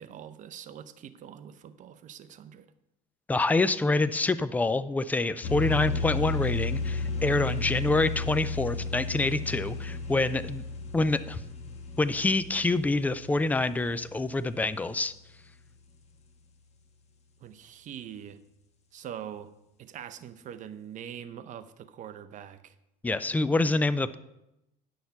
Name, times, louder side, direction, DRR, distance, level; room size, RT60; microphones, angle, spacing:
voice 1, 0.0-2.7 17.4-18.4 18.9-19.5 19.8-22.7, right 9 dB, 40° right, 11 dB, 0.7 m, -43 dB
voice 2, 3.3-10.6 10.9-11.4 12.0-15.1 23.0-24.2, left 2 dB, 10° left, 14 dB, 0.4 m, -26 dB
sound 1, 5.4-14.9, left 3 dB, 35° left, 1.3 m, -34 dB
9.4 x 6.5 x 5.8 m, 0.88 s
cardioid pair, 130°, 19 cm